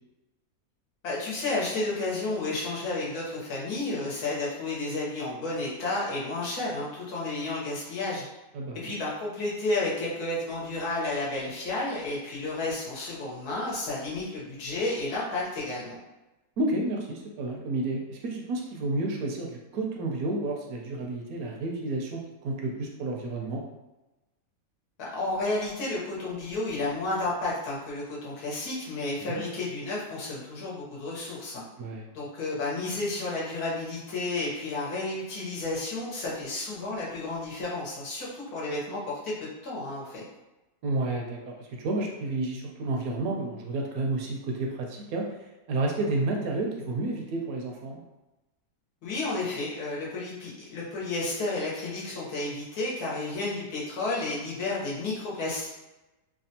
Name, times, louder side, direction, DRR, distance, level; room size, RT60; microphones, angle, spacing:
voice 1, 1.0-8.3 8.8-16.0 25.0-31.6 32.1-40.2 49.0-55.7, left 2 dB, 75° left, -5 dB, 1.4 m, -32 dB
voice 2, 8.5-9.0 16.6-23.6 29.2-29.4 31.8-32.1 40.8-45.3 45.7-48.0, right 2 dB, 70° right, 0 dB, 1.0 m, -31 dB
3.4 x 2.2 x 2.7 m, 1.0 s
omnidirectional pair, 1.7 m